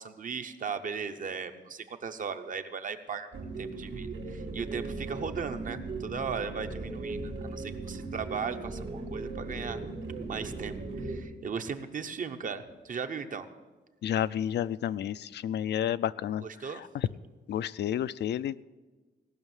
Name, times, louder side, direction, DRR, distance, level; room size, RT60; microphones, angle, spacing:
voice 1, 0.0-3.3 3.6-9.8 10.3-13.5 16.4-16.9, right 6 dB, 45° right, 8 dB, 0.8 m, -37 dB
sound 1, 3.3-11.2, right 3 dB, 85° right, 2.6 m, -38 dB
voice 2, 14.0-16.4 16.8-17.1 17.5-18.6, left 10 dB, 70° left, 16 dB, 0.4 m, -30 dB
17.5 x 6.3 x 9.1 m, 1.3 s
wide cardioid pair, 175°, 18 cm